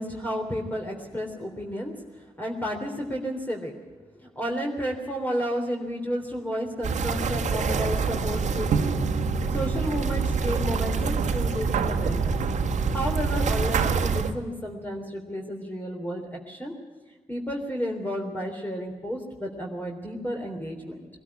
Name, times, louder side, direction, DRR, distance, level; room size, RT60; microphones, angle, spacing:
voice 1, 0.0-3.7 4.2-9.0 9.5-12.4 12.9-16.7 17.3-21.1, equal, 15° left, 0 dB, 3.6 m, -32 dB
sound 1, 6.8-14.3, right 4 dB, 70° right, 1.5 m, -26 dB
sound 2, 7.9-14.4, right 7 dB, 90° right, 1.3 m, -31 dB
21.5 x 13.0 x 9.8 m, 1.4 s
cardioid pair, 60°, 13 cm